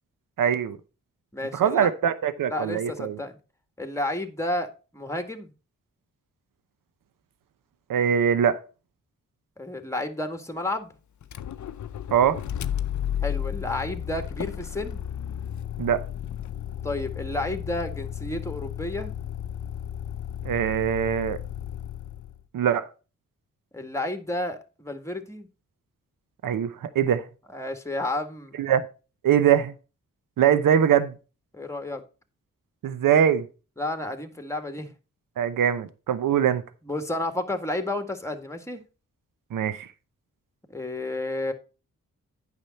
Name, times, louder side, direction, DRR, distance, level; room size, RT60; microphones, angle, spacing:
voice 1, 0.4-0.8 1.5-3.2 7.9-8.6 12.1-12.4 15.8-16.0 20.4-21.4 22.5-22.9 26.4-27.2 28.6-28.8 29.2-29.7 30.4-31.1 32.8-33.4 35.4-36.6 39.5-39.9, right 9 dB, 80° right, 0.7 m, -22 dB
voice 2, 1.3-1.9 2.5-3.4 3.8-5.5 9.6-10.9 13.2-15.0 16.8-19.1 23.7-25.5 27.5-28.6 31.5-32.0 33.8-34.9 36.8-38.8 40.7-41.5, left 2 dB, 10° left, 1.7 m, -31 dB
Motor vehicle (road), 11.2-22.4, left 10 dB, 65° left, 0.6 m, -33 dB
8.9 x 6.1 x 4.1 m
cardioid pair, 45°, 32 cm